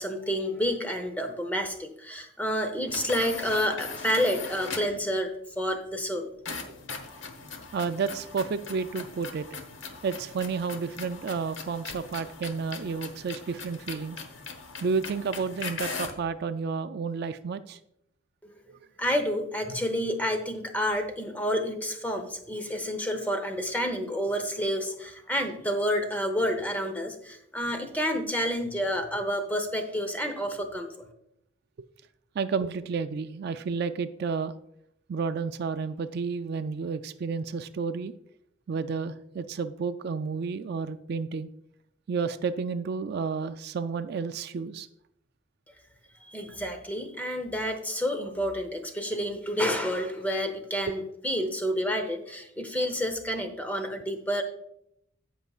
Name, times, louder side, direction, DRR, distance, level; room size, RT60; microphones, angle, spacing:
voice 1, 0.0-6.3 18.4-18.5 19.0-31.1 46.3-54.4, equal, 10° left, 6 dB, 0.8 m, -29 dB
sound 1, 2.9-5.0 6.5-16.3, left 4 dB, 65° left, 1.0 m, -40 dB
voice 2, 7.7-9.5 10.0-14.2 14.8-17.8 32.4-34.5 35.1-38.1 38.7-41.5 42.1-44.9, right 5 dB, 55° right, 11 dB, 0.3 m, -31 dB
16.0 x 5.5 x 2.4 m, 0.77 s
head